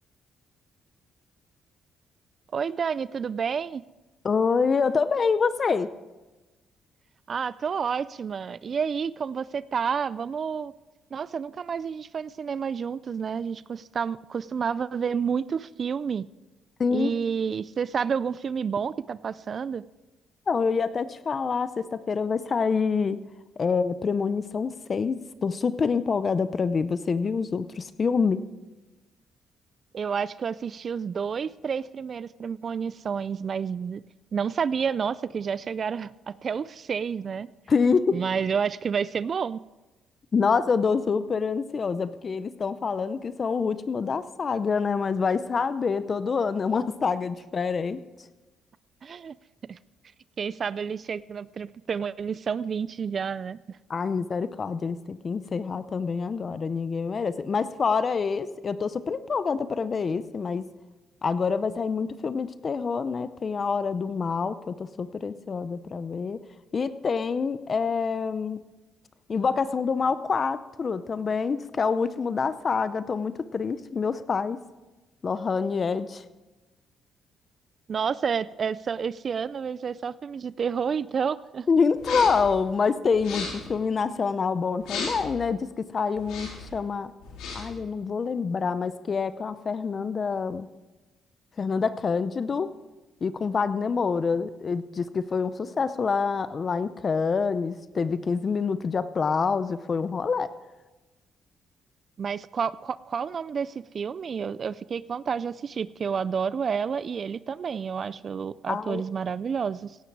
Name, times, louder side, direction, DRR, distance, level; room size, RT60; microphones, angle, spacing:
voice 1, 2.5-3.8 7.3-10.7 11.1-16.3 16.9-19.8 29.9-34.0 34.3-37.5 38.1-39.6 49.0-49.4 49.7-49.8 50.4-53.8 77.9-81.7 102.2-110.0, right 6 dB, 50° right, 18 dB, 0.3 m, -30 dB
voice 2, 4.2-5.9 16.8-17.1 20.5-23.2 23.6-28.4 37.7-38.2 40.3-48.0 53.9-60.6 61.2-66.4 66.7-68.6 69.3-74.6 75.2-76.2 81.7-85.7 85.9-87.1 87.5-90.7 91.6-92.7 93.2-100.5 108.7-109.0, left 5 dB, 40° left, 13 dB, 0.6 m, -26 dB
sound 1, 82.0-82.5 83.1-83.7 84.8-85.3 86.2-86.7 87.2-87.8, left 4 dB, 90° left, 4.5 m, -35 dB
17.0 x 11.0 x 4.8 m, 1.1 s
cardioid pair, 90°, 0 cm